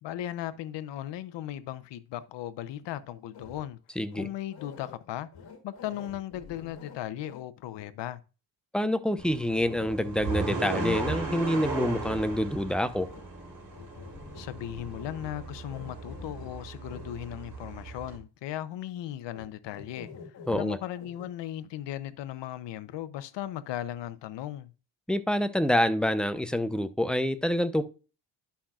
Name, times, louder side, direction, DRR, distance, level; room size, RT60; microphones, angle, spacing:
voice 1, 0.0-3.8 4.2-5.3 5.6-8.2 14.3-20.1 20.5-24.7, left 12 dB, 80° left, 0.8 m, -37 dB
sound 1, 3.3-3.6 4.1-4.9 5.3-7.4 7.7-7.9 9.5-11.5 13.0-13.2 13.7-14.5 14.7-16.5 16.8-17.1 19.3-19.5 19.7-20.6 20.9-21.2, left 5 dB, 60° left, 1.7 m, -47 dB
voice 2, 4.0-4.3 8.7-13.1 20.5-20.8 25.1-27.8, left 1 dB, ahead, 0.6 m, -27 dB
sound 2, 9.2-18.2, right 3 dB, 45° right, 2.7 m, -36 dB
11.5 x 5.7 x 2.4 m
cardioid pair, 110°, 42 cm